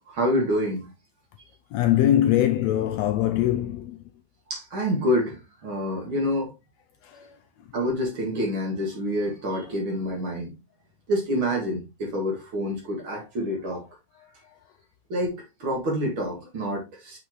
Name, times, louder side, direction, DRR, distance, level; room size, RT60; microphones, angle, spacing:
voice 1, 0.1-0.9 4.5-6.5 7.7-10.5 11.1-13.8 15.1-17.2, equal, 45° right, 2.6 m, -27 dB
voice 2, 1.7-4.0 7.0-7.4 14.2-14.6, left 12 dB, 80° left, 1.6 m, -23 dB
6.8 x 5.5 x 3.0 m
omnidirectional pair, 3.4 m